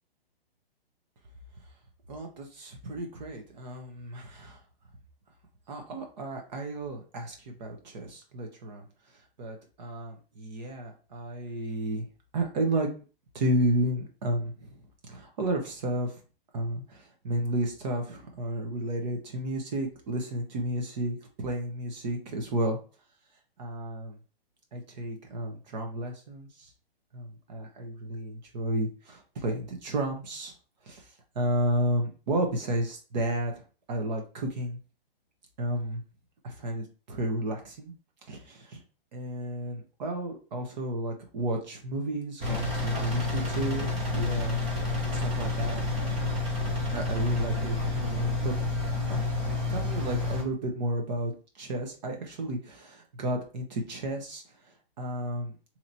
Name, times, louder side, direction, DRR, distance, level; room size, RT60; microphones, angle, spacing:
voice 1, 2.1-4.6 5.7-8.8 9.4-12.0 12.3-12.9 13.3-14.8 15.1-16.1 16.5-22.8 23.6-24.2 24.7-26.7 27.1-30.5 30.8-31.1 31.3-33.5 33.9-34.8 35.6-36.0 36.4-37.9 38.3-38.8 39.1-44.6 45.1-45.8 46.9-48.5 49.1-49.3 49.7-55.6, right 1 dB, 45° right, 3 dB, 1.0 m, -32 dB
Engine, 42.4-50.4, left 3 dB, 10° right, 0.3 m, -29 dB
2.9 x 2.9 x 3.9 m, 0.35 s
hypercardioid pair, 150°, 30 cm